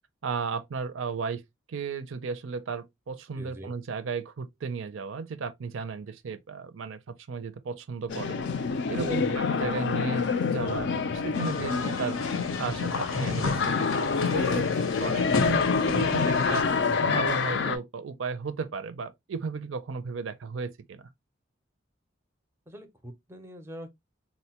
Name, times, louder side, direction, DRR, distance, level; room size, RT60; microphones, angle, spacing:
voice 1, 0.2-1.4 1.7-8.4 8.9-12.2 12.6-14.7 15.0-16.6 17.0-21.0, right 5 dB, 75° right, 0.5 m, -35 dB
voice 2, 3.3-3.8 8.9-9.4 16.8-17.4 22.7-23.9, right 1 dB, 10° right, 0.5 m, -41 dB
sound 1, 8.1-17.8, left 5 dB, 60° left, 0.4 m, -27 dB
sound 2, 11.3-16.6, left 3 dB, 90° left, 0.7 m, -32 dB
3.9 x 2.1 x 2.8 m
head